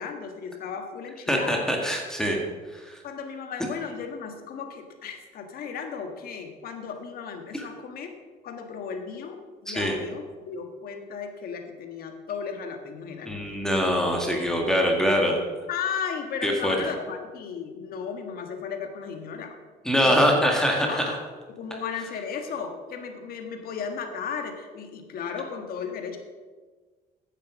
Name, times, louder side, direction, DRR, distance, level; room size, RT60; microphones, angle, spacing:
voice 1, 0.0-1.7 3.0-8.1 8.4-13.6 15.7-19.6 20.0-20.4 20.8-21.2 21.5-26.2, left 6 dB, 60° left, 5 dB, 1.6 m, -35 dB
voice 2, 1.3-2.4 2.7-3.0 7.5-7.6 9.7-10.0 13.3-15.3 16.4-16.8 19.9-21.0, equal, 5° left, 0 dB, 1.8 m, -23 dB
9.5 x 7.6 x 6.2 m, 1.4 s
cardioid pair, 110°, 17 cm